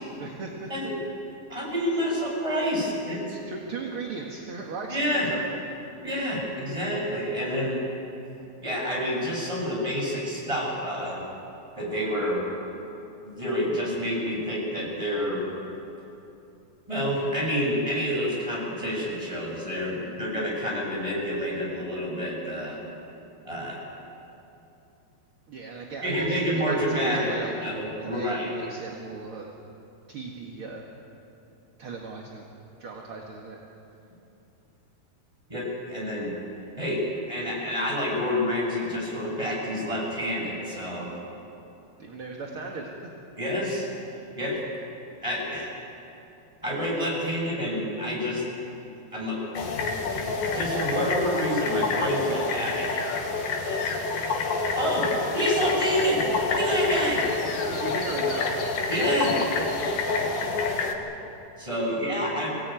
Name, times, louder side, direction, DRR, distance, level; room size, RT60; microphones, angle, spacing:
voice 1, 0.2-0.9 3.3-5.6 25.5-27.6 28.0-29.5 30.1-30.9 31.8-32.5 32.8-33.6 42.0-42.9 57.7-58.7 59.6-59.9 61.9-62.0 62.2-62.3, right 3 dB, 45° right, -1 dB, 1.9 m, -37 dB
voice 2, 1.5-3.2 4.9-5.3 6.0-7.8 8.6-11.2 11.7-12.4 13.2-15.5 16.9-22.8 23.4-23.8 26.0-27.4 27.6-28.6 35.5-36.3 36.8-41.1 43.4-43.9 44.4-44.6 45.2-45.7 46.6-48.4 49.1-49.4 50.5-54.5 54.7-57.2 58.9-59.4 61.6-62.5, equal, 10° right, -4 dB, 6.7 m, -28 dB
sound 1, 49.5-60.9, left 4 dB, 70° left, 3.4 m, -28 dB
24.5 x 17.5 x 9.1 m, 2.9 s
omnidirectional pair, 4.3 m